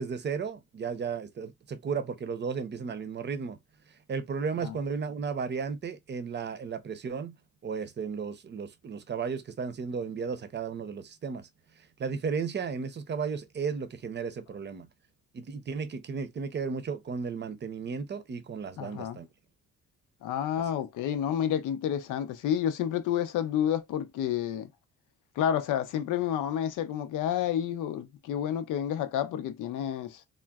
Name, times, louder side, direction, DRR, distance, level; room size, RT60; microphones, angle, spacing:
voice 1, 0.0-3.6 4.1-7.3 7.6-11.5 12.0-14.9 15.3-19.3, right 5 dB, 35° right, 0.7 m, -34 dB
voice 2, 18.8-19.2 20.2-24.7 25.4-30.2, left 10 dB, 85° left, 0.6 m, -30 dB
3.7 x 2.1 x 2.3 m
cardioid pair, 90°, 30 cm